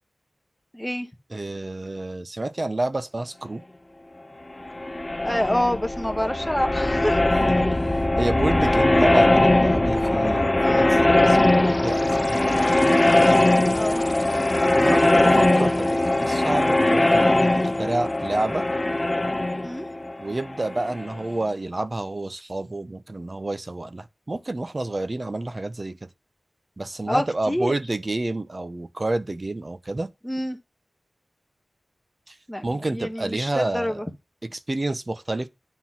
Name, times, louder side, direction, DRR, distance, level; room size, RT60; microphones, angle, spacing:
voice 1, 0.7-1.1 5.2-7.2 10.6-10.9 13.7-14.0 19.6-19.9 27.1-27.7 30.2-30.6 32.5-32.6 32.9-34.1, left 1 dB, 5° left, 1.3 m, -27 dB
voice 2, 1.3-3.6 7.7-13.0 14.8-18.6 20.2-26.1 26.8-30.1 32.3-32.4 32.6-34.0 34.4-35.5, right 2 dB, 35° right, 0.8 m, -29 dB
sound 1, 4.6-21.3, left 1 dB, 25° left, 0.4 m, -20 dB
9.8 x 3.9 x 5.8 m
wide cardioid pair, 95°, 0 cm